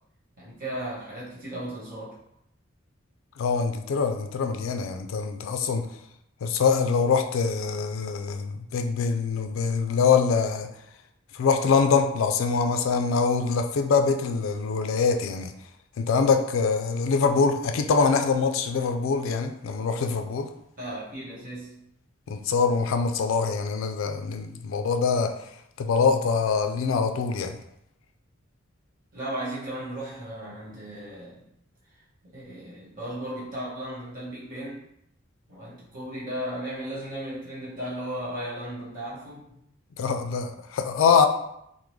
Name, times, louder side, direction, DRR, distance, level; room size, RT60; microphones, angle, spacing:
voice 1, 0.4-2.2 20.8-21.8 29.1-31.5 32.3-34.8 35.5-39.6, right 1 dB, 45° right, -8 dB, 1.3 m, -36 dB
voice 2, 3.4-5.9 6.4-10.7 11.3-15.5 16.0-20.5 22.3-25.3 25.8-27.6 40.0-41.3, left 5 dB, 70° left, 7 dB, 0.3 m, -24 dB
3.6 x 2.1 x 3.1 m, 0.77 s
head